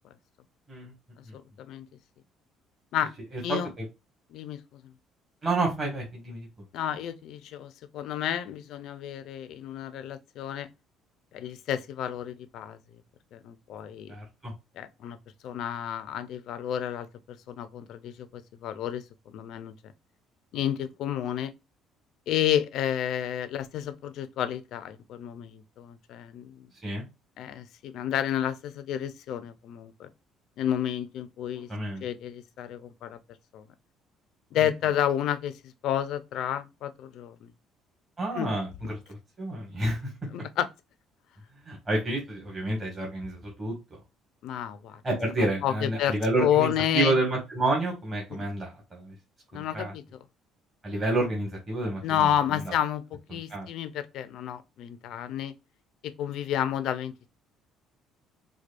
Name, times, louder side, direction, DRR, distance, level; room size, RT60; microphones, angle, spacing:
voice 1, 3.5-3.8 5.4-6.5 14.1-14.5 26.8-27.0 31.7-32.0 38.2-40.1 41.6-44.0 45.0-49.1 49.5-49.9 50.8-52.7 53.3-53.7, right 2 dB, 25° right, 1.6 m, -29 dB
voice 2, 4.3-4.9 6.7-10.7 11.3-12.8 13.3-14.1 14.8-15.2 15.4-19.7 20.5-21.5 22.3-26.7 27.4-30.1 30.6-31.7 32.0-33.2 33.5-33.6 34.5-37.5 38.3-38.5 40.3-40.7 44.4-45.0 45.4-47.1 48.3-48.5 49.5-50.2 52.0-53.0 53.3-55.5 56.0-57.3, left 10 dB, 65° left, 0.6 m, -31 dB
4.7 x 2.3 x 2.5 m
cardioid pair, 125°, 0 cm